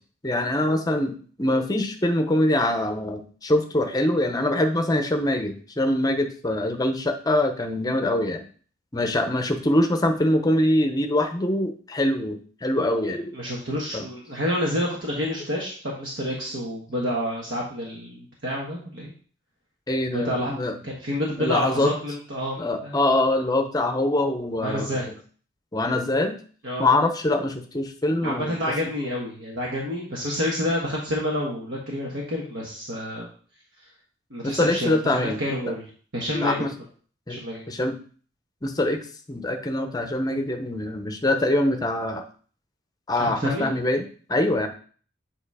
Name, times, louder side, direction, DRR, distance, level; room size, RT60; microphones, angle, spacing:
voice 1, 0.2-8.4 8.9-13.3 13.9-14.1 19.9-20.7 21.4-21.9 22.6-25.1 25.7-26.4 26.8-28.6 34.4-35.4 36.3-36.7 37.3-37.4 37.7-37.9 38.6-39.0 39.3-42.2 43.1-44.7, left 1 dB, 20° left, 6 dB, 0.6 m, -24 dB
voice 2, 13.1-15.7 16.0-19.1 20.1-20.5 20.8-23.0 24.6-25.1 26.6-26.9 28.2-33.3 34.3-35.8 36.1-36.6 37.3-37.7 43.2-43.7, equal, 65° right, -3 dB, 1.3 m, -28 dB
8.0 x 3.0 x 4.8 m, 0.43 s
head